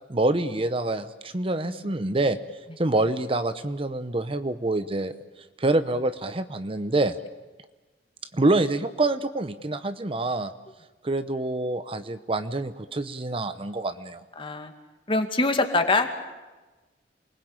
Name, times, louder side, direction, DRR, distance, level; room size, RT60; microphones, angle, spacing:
voice 1, 0.1-2.4 2.8-5.1 5.6-7.2 8.3-10.5 11.0-14.2, right 2 dB, 30° right, 11 dB, 0.8 m, -26 dB
voice 2, 14.4-14.7 15.1-16.1, left 2 dB, 30° left, 6 dB, 2.3 m, -24 dB
28.5 x 20.5 x 8.9 m, 1.2 s
head